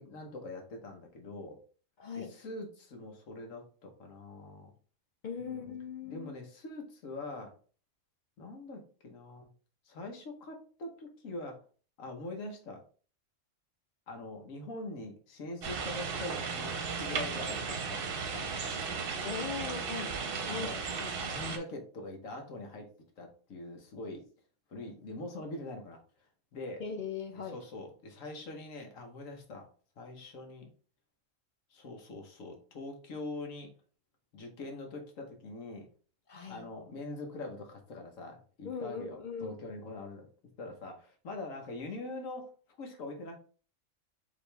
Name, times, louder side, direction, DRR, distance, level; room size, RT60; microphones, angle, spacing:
voice 1, 0.0-1.6 2.2-4.7 5.4-5.7 6.0-7.5 8.4-9.5 9.9-11.6 12.0-12.8 14.1-18.9 20.5-20.8 21.2-22.9 23.2-24.2 24.7-26.0 26.5-26.8 27.3-29.7 30.0-30.7 31.7-33.7 34.3-35.9 36.5-40.3 40.6-42.5 42.8-43.4, left 2 dB, 85° left, 1.4 m, -43 dB
voice 2, 2.0-2.3 5.2-6.3 19.2-20.2 20.5-20.7 21.0-21.2 26.8-27.6 36.3-36.7 38.6-39.6, left 6 dB, 55° left, 0.5 m, -39 dB
sound 1, 15.6-21.6, right 5 dB, 50° right, 0.8 m, -35 dB
5.0 x 3.1 x 3.2 m
omnidirectional pair, 1.3 m